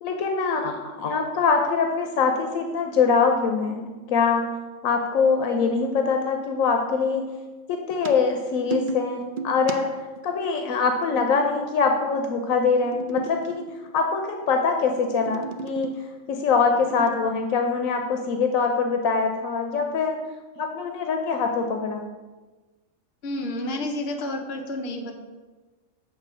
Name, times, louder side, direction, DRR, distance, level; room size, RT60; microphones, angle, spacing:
voice 1, 0.0-4.4 4.8-7.2 7.7-9.9 10.2-13.6 13.9-15.9 16.3-20.2 20.6-22.0, left 5 dB, 90° left, 3 dB, 1.1 m, -23 dB
sound 1, 7.9-10.2 12.4-14.3 14.8-16.1 16.6-17.1, right 3 dB, 60° right, 0.5 m, -34 dB
voice 2, 23.2-25.1, left 1 dB, 55° left, 2 dB, 1.0 m, -30 dB
7.6 x 3.6 x 6.2 m, 1.3 s
omnidirectional pair, 1.4 m